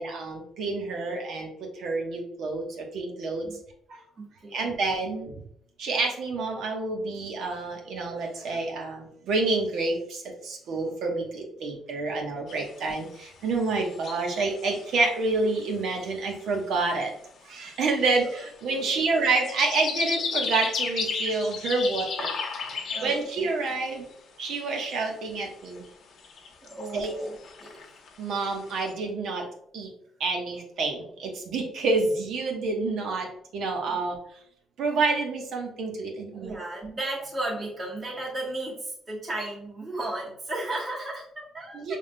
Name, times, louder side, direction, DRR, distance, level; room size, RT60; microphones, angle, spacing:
voice 1, 0.0-3.5 3.9-4.0 4.5-5.3 5.8-17.1 17.4-22.3 22.6-24.1 24.4-25.8 26.9-27.1 28.2-29.4 29.7-29.9 30.2-33.3 33.5-34.2 34.8-36.6 41.7-42.0, right 3 dB, 70° right, 1 dB, 1.1 m, -28 dB
voice 2, 4.2-4.7 18.7-19.0 22.9-23.5 26.6-27.7 33.9-34.0 36.4-42.0, right 2 dB, 25° right, -4 dB, 1.3 m, -35 dB
sound 1, 12.5-15.0 15.2-15.3 15.5-16.0 16.3-16.5 16.9-17.0 17.6-23.8 24.1-24.2 24.5-25.0 25.5-25.9 26.2-28.9, left 5 dB, 60° left, 0.9 m, -35 dB
5.0 x 3.5 x 2.2 m, 0.68 s
cardioid pair, 110°, 0 cm